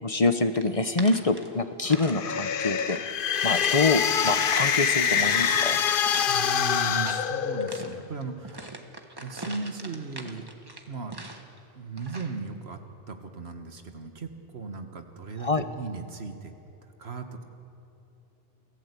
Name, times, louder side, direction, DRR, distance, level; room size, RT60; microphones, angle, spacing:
voice 1, 0.0-5.8 15.4-15.7, left 3 dB, 35° left, 9 dB, 1.0 m, -26 dB
sound 1, 0.5-2.2 2.5-3.1 3.5-3.9 4.2-4.7 5.2-7.3 7.6-11.6 12.0-12.4, right 2 dB, 25° right, 1.4 m, -42 dB
sound 2, 1.9-8.0, left 8 dB, 60° left, 0.9 m, -25 dB
voice 2, 6.2-8.8 9.2-10.5 10.9-11.2 11.8-12.8 13.1-16.5 17.0-17.4, right 4 dB, 90° right, 6 dB, 1.8 m, -37 dB
28.5 x 15.5 x 8.4 m, 2.8 s
omnidirectional pair, 1.0 m